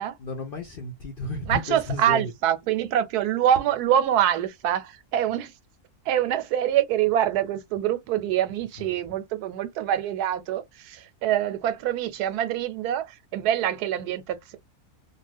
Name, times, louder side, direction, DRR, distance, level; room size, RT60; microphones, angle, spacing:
voice 1, 0.0-2.3 8.8-8.9, left 2 dB, 60° left, 0.6 m, -33 dB
voice 2, 1.5-5.5 6.1-14.6, right 10 dB, 90° right, 1.1 m, -25 dB
2.4 x 2.4 x 3.3 m
omnidirectional pair, 1.6 m